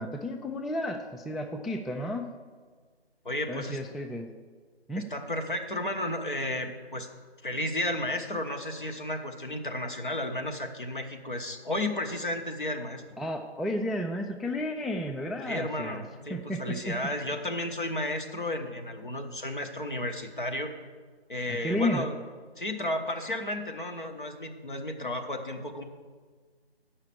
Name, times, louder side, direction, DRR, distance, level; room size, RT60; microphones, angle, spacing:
voice 1, 0.0-2.4 3.5-4.3 4.9-5.0 13.2-16.9 21.5-22.0, left 1 dB, ahead, 4 dB, 0.3 m, -32 dB
voice 2, 3.2-3.8 4.9-7.1 7.4-13.0 15.4-20.7 21.3-22.2 22.6-25.8, left 1 dB, 50° left, 5 dB, 1.0 m, -33 dB
8.2 x 5.7 x 6.9 m, 1.5 s
figure-of-eight pair, 180°, 33 cm